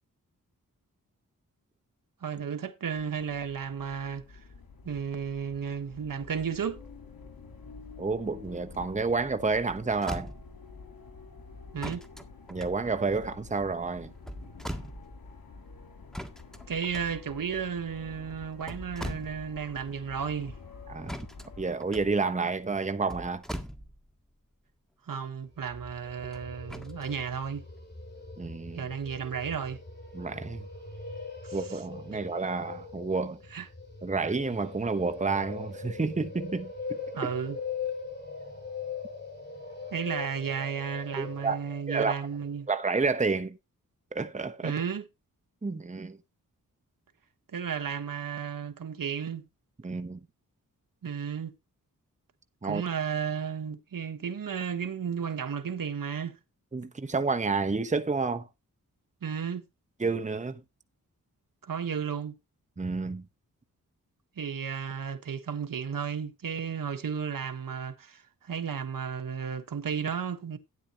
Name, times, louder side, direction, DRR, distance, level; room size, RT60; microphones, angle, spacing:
voice 1, 2.2-4.4 4.8-6.8 11.7-12.0 16.7-20.6 25.1-27.6 28.7-29.8 31.4-31.8 33.5-33.7 37.1-37.6 39.9-42.7 44.6-45.0 47.5-49.4 51.0-51.5 52.6-56.4 59.2-59.6 61.6-62.3 64.4-70.6, right 7 dB, 70° right, 1.3 m, -33 dB
sound 1, 2.9-21.8, left 4 dB, 90° left, 2.7 m, -49 dB
voice 2, 8.0-10.3 12.5-14.1 20.9-21.1 21.6-23.4 28.4-28.8 30.1-30.6 31.5-33.4 34.0-36.7 37.2-37.3 41.2-41.6 41.9-42.2 42.7-43.6 44.1-44.8 45.6-46.2 49.8-50.2 52.6-52.8 56.7-58.5 60.0-60.6 62.8-63.3, right 4 dB, 20° right, 1.0 m, -30 dB
sound 2, 9.5-9.6 9.9-10.7 11.8-13.4 14.1-15.3 16.1-17.6 18.4-19.7 20.0-20.1 21.1-24.3 26.3-27.1 27.8-27.9, equal, ahead, 1.7 m, -41 dB
sound 3, 25.5-42.5, left 5 dB, 30° left, 6.8 m, -41 dB
12.5 x 9.6 x 2.9 m
wide cardioid pair, 75°, 35 cm